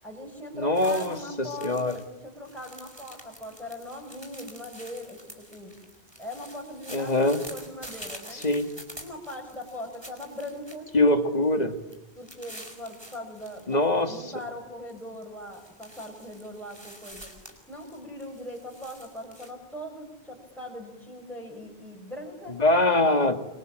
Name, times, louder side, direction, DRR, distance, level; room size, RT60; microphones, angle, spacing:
voice 1, 0.0-5.7 6.2-8.5 9.0-10.9 12.2-17.3 17.7-22.6, left 1 dB, ahead, 0 dB, 6.4 m, -40 dB
voice 2, 0.5-1.2 1.6-1.9 6.9-7.4 8.4-8.7 10.9-11.7 13.7-14.1 22.6-23.4, left 2 dB, 40° left, 7 dB, 2.2 m, -22 dB
sound 1, 0.7-2.1 2.3-11.1 11.4-11.6 11.9-13.6 14.0-14.5 14.9-19.5, right 1 dB, 25° right, 4.8 m, -47 dB
26.5 x 25.5 x 8.9 m, 1.0 s
omnidirectional pair, 1.1 m